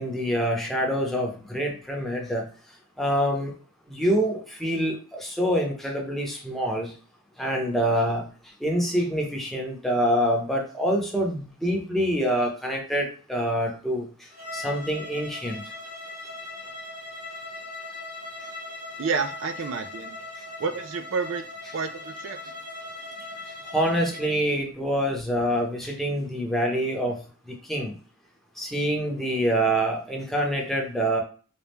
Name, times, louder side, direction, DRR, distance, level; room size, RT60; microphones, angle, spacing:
voice 1, 0.0-2.4 3.0-3.5 3.9-6.9 7.4-8.2 8.6-14.1 14.5-15.6 23.7-27.2 27.7-27.9 28.6-31.2, equal, ahead, 0 dB, 0.8 m, -26 dB
Bowed string instrument, 14.3-24.4, left 2 dB, 80° right, 1.6 m, -39 dB
voice 2, 19.0-20.2 20.6-21.5 21.7-22.5, right 5 dB, 65° right, 8 dB, 0.4 m, -29 dB
4.1 x 2.3 x 3.4 m, 0.40 s
head